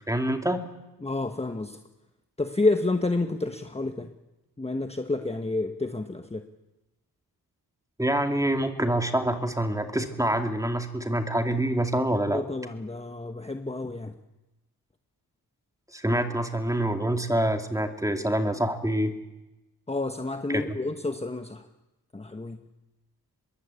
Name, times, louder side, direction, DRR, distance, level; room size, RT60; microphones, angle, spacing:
voice 1, 0.1-0.6 8.0-12.4 15.9-19.1 20.5-20.8, right 1 dB, 10° right, 5 dB, 2.5 m, -26 dB
voice 2, 1.0-1.8 2.4-4.1 4.6-6.4 12.3-14.1 19.9-21.6 22.1-22.6, left 2 dB, 15° left, 6 dB, 1.3 m, -29 dB
25.5 x 21.5 x 8.4 m, 1.0 s
wide cardioid pair, 100°, 38 cm